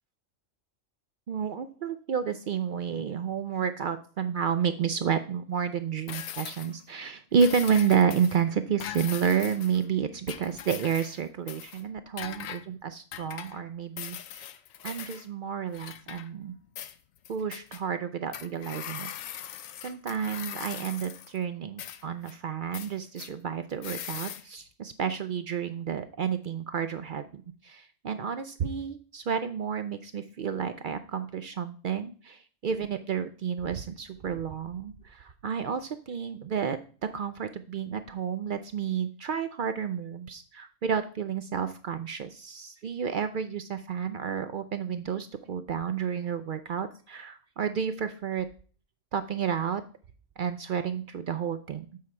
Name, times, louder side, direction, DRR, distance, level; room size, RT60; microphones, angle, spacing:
voice 1, 1.3-14.5 14.8-16.5 17.3-19.1 19.8-48.5 49.1-49.8 50.4-52.0, right 7 dB, 70° right, 10 dB, 0.4 m, -30 dB
sound 1, 6.1-6.8 7.4-8.4 8.8-9.8 10.3-11.2 11.5-11.8 12.2-12.6 13.1-13.6 14.0-15.3 15.7-16.5 16.8-17.8 18.3-21.4 21.8-22.3 22.7-23.3 23.8-24.4, left 10 dB, 85° left, 1.0 m, -40 dB
7.6 x 4.3 x 4.7 m, 0.40 s
omnidirectional pair, 1.4 m